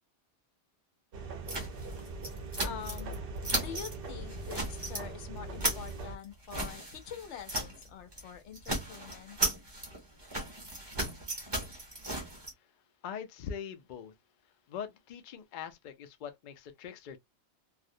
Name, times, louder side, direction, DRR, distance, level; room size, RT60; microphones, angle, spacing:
sound 1, 1.1-6.2, right 2 dB, 60° right, 0.7 m, -41 dB
sound 2, 1.5-3.2 3.4-4.0 4.3-5.0 5.4-8.3 8.5-12.5, right 1 dB, 25° right, 0.7 m, -36 dB
voice 1, 2.6-3.2 3.6-9.4, left 7 dB, 90° left, 0.9 m, -45 dB
voice 2, 13.0-14.1 14.7-17.2, left 7 dB, 60° left, 0.5 m, -42 dB
2.4 x 2.0 x 2.6 m
omnidirectional pair, 1.2 m